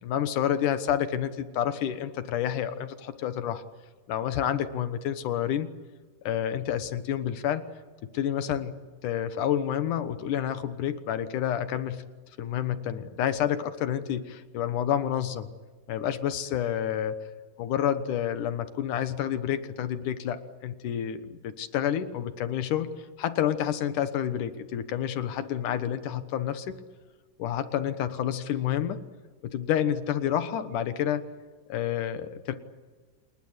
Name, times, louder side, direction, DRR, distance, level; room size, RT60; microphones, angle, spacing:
voice 1, 0.0-3.6 4.1-5.7 6.2-7.6 8.0-8.8 9.0-12.0 12.4-15.5 15.9-17.2 17.6-22.9 23.2-26.8 27.4-29.0 29.4-31.2 31.7-32.5, left 10 dB, 80° left, 11 dB, 2.8 m, -29 dB
29.0 x 19.5 x 8.0 m, 1.4 s
omnidirectional pair, 3.6 m